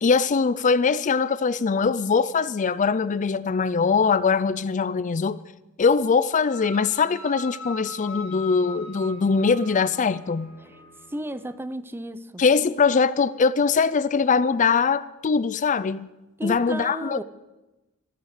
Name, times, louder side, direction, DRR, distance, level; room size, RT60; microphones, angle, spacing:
voice 1, 0.0-5.4 5.8-10.5 12.4-16.1 16.4-17.2, left 5 dB, 35° left, 0.4 m, -22 dB
sound 1, 6.5-11.5, left 3 dB, 70° left, 6.6 m, -41 dB
voice 2, 11.1-12.4 16.4-17.2, right 1 dB, 10° right, 0.6 m, -33 dB
14.5 x 14.0 x 6.6 m
head